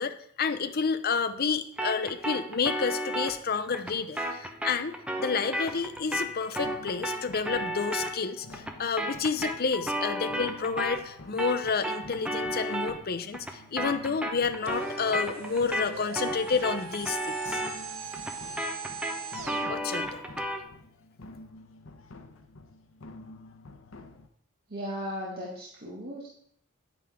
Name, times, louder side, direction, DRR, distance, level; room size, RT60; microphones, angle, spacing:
voice 1, 0.0-17.6 19.7-20.2, left 5 dB, 50° left, 10 dB, 0.7 m, -30 dB
sound 1, 1.8-11.1 11.4-20.7, equal, 5° right, 0.9 m, -34 dB
sound 2, 5.7-24.3, left 2 dB, 70° left, 0.9 m, -49 dB
sound 3, 14.6-19.8, right 5 dB, 75° right, 0.8 m, -40 dB
voice 2, 24.7-26.3, equal, 50° right, -5 dB, 2.0 m, -36 dB
9.9 x 9.0 x 3.7 m, 0.62 s
head